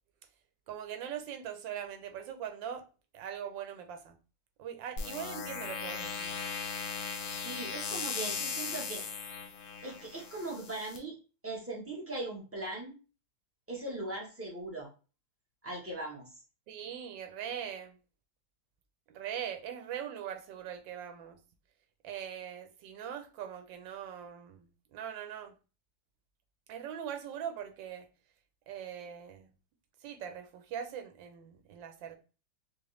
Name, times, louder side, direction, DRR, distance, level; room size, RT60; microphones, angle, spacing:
voice 1, 0.7-2.8 3.1-4.2 4.6-6.3 16.7-18.0 19.1-21.4 22.0-25.5 26.7-28.1 28.7-29.5 30.0-32.2, right 9 dB, 90° right, 1.4 m, -41 dB
sound 1, 5.0-11.0, left 5 dB, 60° left, 0.8 m, -38 dB
voice 2, 7.3-9.0 9.8-11.1 11.4-13.0 13.7-14.9 15.6-16.3, right 2 dB, 15° right, 0.4 m, -39 dB
4.9 x 2.0 x 3.1 m
omnidirectional pair, 2.0 m